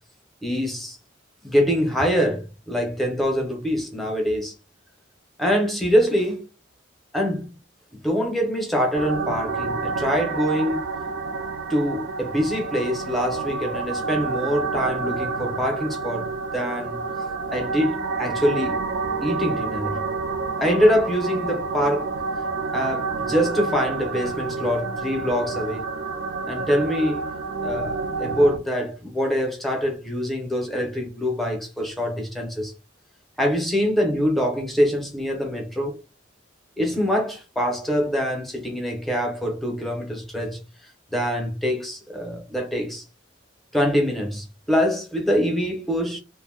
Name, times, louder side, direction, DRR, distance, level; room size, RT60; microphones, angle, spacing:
voice 1, 0.4-1.0 1.4-4.5 5.4-6.5 7.1-7.5 8.0-10.9 11.7-17.0 17.5-18.8 19.2-20.0 20.6-22.1 22.7-25.9 26.5-27.2 27.6-32.7 33.4-36.0 36.8-40.6 41.1-43.0 43.7-46.2, equal, ahead, 0.6 m, -24 dB
sound 1, 8.9-28.6, right 4 dB, 70° right, 0.4 m, -29 dB
2.5 x 2.0 x 3.7 m
head